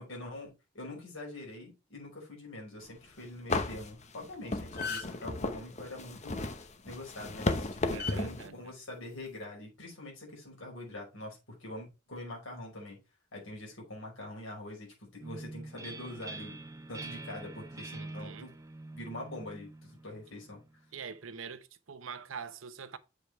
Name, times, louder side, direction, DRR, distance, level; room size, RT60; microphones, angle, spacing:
voice 1, 0.0-13.0 13.3-16.6 16.9-18.6 18.9-20.6, left 1 dB, 75° left, 5.2 m, -44 dB
sound 1, 2.9-3.0 3.5-8.5, left 2 dB, 35° left, 0.9 m, -34 dB
sound 2, 4.2-4.3 4.6-5.3 6.9-7.1 8.0-8.2 9.2-9.4, left 5 dB, 55° left, 2.2 m, -37 dB
voice 2, 7.9-8.7 17.9-18.5 20.9-23.0, right 6 dB, 75° right, 0.8 m, -44 dB
sound 3, 15.2-20.8, right 2 dB, 15° right, 1.0 m, -45 dB
7.7 x 5.3 x 4.5 m
head